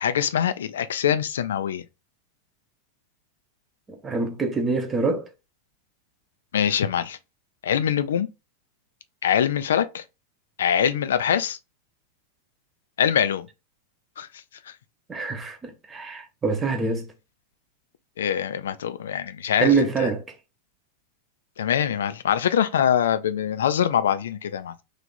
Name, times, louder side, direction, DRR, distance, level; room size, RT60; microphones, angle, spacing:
voice 1, 0.0-1.8 6.5-7.2 7.6-8.3 9.2-10.0 10.6-11.6 13.0-13.5 14.2-14.3 18.2-19.7 20.0-20.1 21.6-24.7, left 9 dB, 65° left, 0.4 m, -23 dB
voice 2, 3.9-5.3 15.1-17.1 19.6-20.2, right 4 dB, 20° right, 0.8 m, -25 dB
3.2 x 2.4 x 4.1 m
figure-of-eight pair, 90°, 0 cm